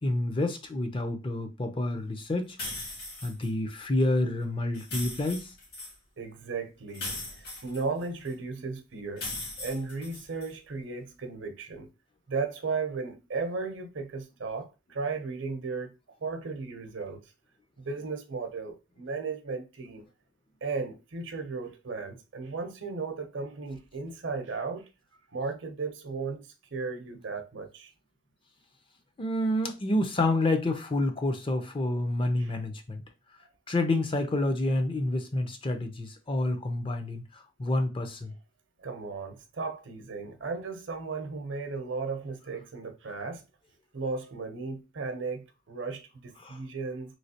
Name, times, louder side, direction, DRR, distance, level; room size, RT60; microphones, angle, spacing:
voice 1, 0.0-2.6 3.2-5.5 29.2-33.0 33.7-38.3 46.4-46.6, left 1 dB, 25° left, 0.5 m, -28 dB
sound 1, 2.6-3.5 4.7-5.9 6.9-8.3 9.2-10.5, left 2 dB, 60° left, 1.6 m, -38 dB
voice 2, 6.2-9.2 9.6-11.9 12.3-15.9 16.2-17.2 17.8-20.1 20.6-24.9 25.3-27.9 32.4-32.5 38.8-43.4 43.9-47.2, right 4 dB, 70° right, 0.7 m, -35 dB
3.1 x 2.8 x 2.8 m
head